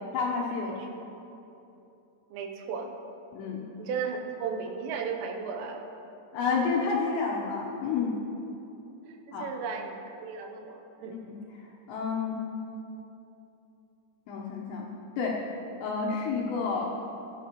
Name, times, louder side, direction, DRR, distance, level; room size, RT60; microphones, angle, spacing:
voice 1, 0.1-0.8 3.3-3.6 6.3-8.2 9.3-9.5 11.1-12.4 14.3-14.9 15.2-15.4 15.8-16.9, left 5 dB, 75° left, -2 dB, 2.7 m, -30 dB
voice 2, 2.3-2.9 3.8-5.9 9.0-11.2, right 5 dB, 80° right, 3 dB, 3.3 m, -35 dB
15.0 x 12.0 x 3.0 m, 2.9 s
omnidirectional pair, 5.9 m